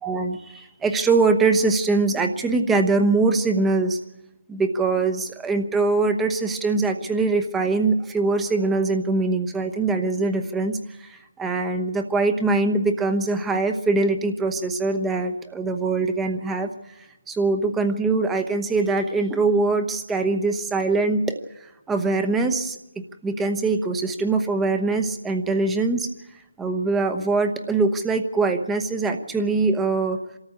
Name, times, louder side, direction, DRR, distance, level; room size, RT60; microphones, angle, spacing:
voice 1, 0.0-4.0 4.5-16.7 17.3-21.4 21.9-22.8 23.2-26.1 26.6-30.2, right 3 dB, 10° right, 6 dB, 1.0 m, -22 dB
25.0 x 13.5 x 8.5 m, 0.92 s
figure-of-eight pair, 155°, 0 cm